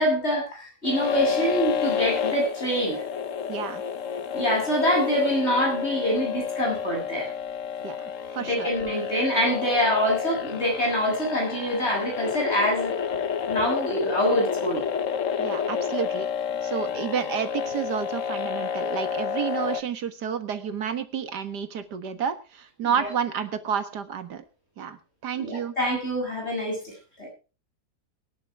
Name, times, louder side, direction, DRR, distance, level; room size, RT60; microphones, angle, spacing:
voice 1, 0.0-3.0 4.3-7.3 8.5-12.9 13.5-14.8 22.8-23.1 25.3-27.3, equal, 40° left, -1 dB, 8.2 m, -25 dB
sound 1, 0.8-19.8, left 7 dB, 55° left, 1.2 m, -30 dB
voice 2, 3.5-3.8 7.8-8.7 15.4-16.3 16.6-24.4 24.8-25.7, right 7 dB, 75° right, 9 dB, 2.1 m, -30 dB
20.5 x 11.0 x 3.5 m, 0.33 s
omnidirectional pair, 1.8 m